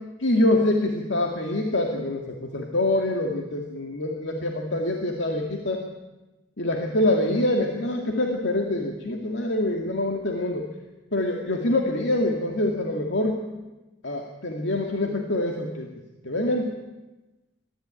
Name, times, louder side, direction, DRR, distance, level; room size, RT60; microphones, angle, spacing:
voice 1, 0.2-5.8 6.6-10.7 11.1-13.4 14.0-15.9 16.2-16.8, left 1 dB, 80° left, 2 dB, 2.2 m, -25 dB
21.5 x 14.5 x 9.0 m, 1.1 s
head